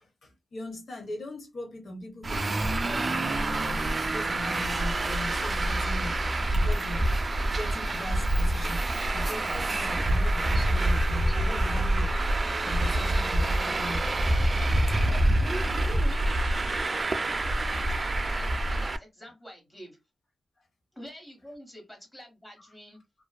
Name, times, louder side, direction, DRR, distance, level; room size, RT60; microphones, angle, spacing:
voice 1, 0.0-6.2 6.5-7.2 7.5-8.8 9.1-12.1 12.6-15.0, left 2 dB, 65° left, 0.7 m, -40 dB
Traffic noise roadway noise, 2.2-19.0, right 1 dB, 40° right, 0.3 m, -26 dB
voice 2, 15.1-20.0 20.9-23.0, right 1 dB, 10° left, 1.1 m, -45 dB
2.5 x 2.3 x 2.2 m
wide cardioid pair, 95°, 0 cm